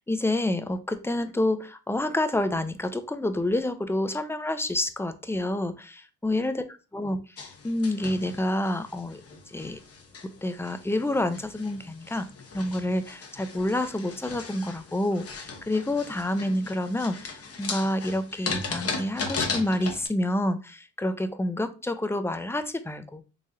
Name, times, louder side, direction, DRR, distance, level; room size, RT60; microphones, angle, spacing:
voice 1, 0.0-5.8 6.2-6.6 6.9-7.2 7.6-9.2 9.5-9.8 10.2-12.3 12.5-23.2, left 1 dB, 5° left, 9 dB, 0.5 m, -28 dB
sound 1, 7.4-20.1, left 4 dB, 45° left, 1.0 m, -37 dB
3.6 x 3.2 x 2.7 m, 0.32 s
supercardioid pair, 65°, 33 cm